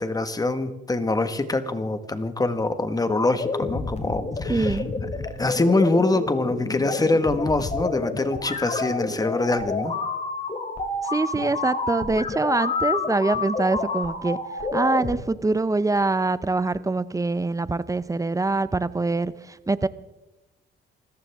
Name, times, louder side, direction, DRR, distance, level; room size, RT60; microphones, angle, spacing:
voice 1, 0.0-4.8 5.3-10.0, left 2 dB, 20° left, 10 dB, 1.5 m, -24 dB
sound 1, 3.4-15.1, left 3 dB, 35° left, 2.8 m, -29 dB
voice 2, 4.5-4.9 11.1-14.4 14.7-19.9, right 3 dB, 15° right, 16 dB, 0.6 m, -24 dB
25.0 x 14.5 x 3.6 m, 1.0 s
cardioid pair, 90°, 20 cm